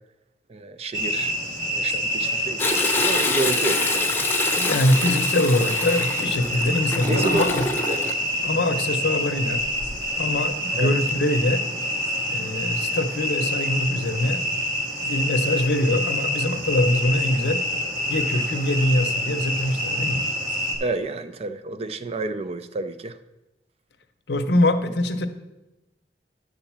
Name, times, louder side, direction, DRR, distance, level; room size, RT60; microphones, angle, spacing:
voice 1, 0.5-1.3 1.7-4.3 7.1-7.4 7.8-8.1 10.8-10.9 20.8-23.2, right 3 dB, 35° right, 11 dB, 0.4 m, -30 dB
sound 1, 0.9-20.8, left 1 dB, 50° right, 1.7 m, -27 dB
Toilet flush, 2.6-8.1 9.6-10.1 10.6-10.7, left 3 dB, 15° left, 0.7 m, -26 dB
voice 2, 4.6-7.7 8.4-9.6 10.2-11.6 12.3-14.5 15.0-17.6 18.1-20.2 24.3-25.3, left 1 dB, 70° left, 8 dB, 0.7 m, -23 dB
10.0 x 3.8 x 7.3 m, 1.0 s
head